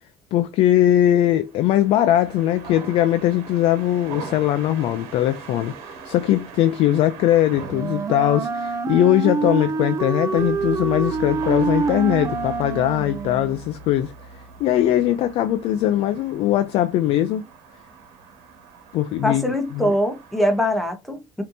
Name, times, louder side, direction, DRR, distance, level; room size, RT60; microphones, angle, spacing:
voice 1, 0.3-14.1 14.6-17.4 18.9-19.9, left 12 dB, 70° left, 0.4 m, -20 dB
sound 1, 1.4-20.9, right 5 dB, 85° right, 1.2 m, -43 dB
Wind instrument woodwind instrument, 7.7-13.6, right 5 dB, 30° right, 0.5 m, -26 dB
Bass guitar, 10.4-16.8, right 1 dB, 55° right, 1.4 m, -41 dB
voice 2, 19.2-21.4, equal, ahead, 1.0 m, -22 dB
5.1 x 2.9 x 2.7 m
cardioid pair, 125°, 10 cm